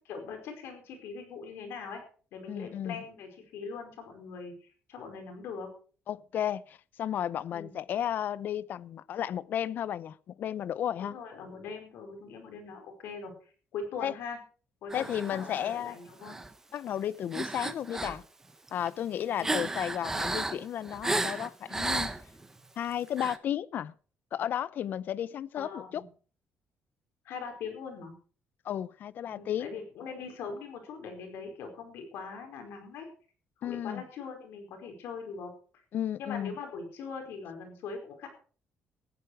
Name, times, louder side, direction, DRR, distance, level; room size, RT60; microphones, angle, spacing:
voice 1, 0.1-2.0 2.3-5.7 7.5-7.8 11.0-13.3 13.7-14.4 14.8-16.4 19.4-19.8 25.5-26.1 27.2-28.1 29.3-33.1 33.6-35.5 36.2-38.3, left 5 dB, 80° left, 4.8 m, -41 dB
voice 2, 2.5-3.0 6.1-11.1 14.0-14.1 14.9-16.0 16.7-18.2 18.7-22.1 22.8-23.9 24.3-26.0 28.6-29.7 33.6-34.0 35.9-36.6, left 10 dB, 55° left, 0.6 m, -33 dB
sound 1, 14.9-15.8 16.2-16.5 17.3-18.2 18.7-22.5 23.1-23.4, right 2 dB, 10° right, 1.0 m, -33 dB
15.0 x 11.0 x 4.7 m
cardioid pair, 155°, 4 cm